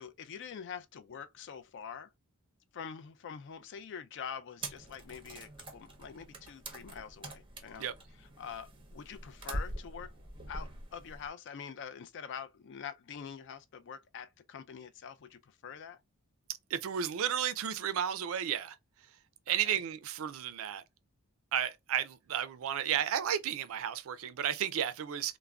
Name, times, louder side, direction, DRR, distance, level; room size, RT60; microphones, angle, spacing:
voice 1, 0.0-2.1 2.7-7.9 8.2-10.1 10.5-16.0 19.6-19.8, left 7 dB, 55° left, 0.4 m, -45 dB
sound 1, 4.6-11.3, right 1 dB, 25° right, 0.6 m, -44 dB
voice 2, 16.7-18.8 19.5-20.8 21.5-25.4, right 9 dB, 65° right, 0.4 m, -33 dB
3.5 x 2.0 x 2.2 m
head